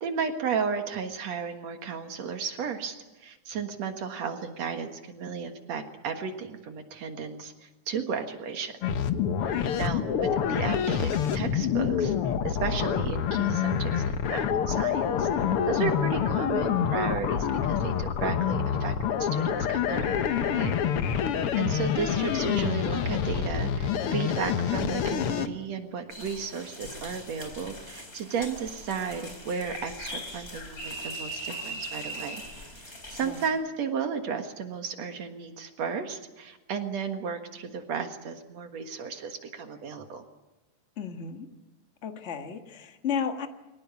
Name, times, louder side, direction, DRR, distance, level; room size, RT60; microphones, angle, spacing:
voice 1, 0.0-8.7 9.8-15.3 15.7-18.9 19.2-20.2 20.4-20.7 21.6-32.4 32.7-40.2, right 6 dB, 60° right, 6 dB, 2.6 m, -34 dB
sound 1, 8.8-25.5, left 8 dB, 60° left, 1.5 m, -27 dB
voice 2, 9.5-9.9 20.9-21.4 33.2-33.4 41.0-41.5 42.0-43.5, left 6 dB, 45° left, 6 dB, 0.9 m, -34 dB
sound 2, 26.1-33.5, equal, 20° left, 3.6 m, -40 dB
23.5 x 18.0 x 9.6 m, 1.1 s
omnidirectional pair, 3.7 m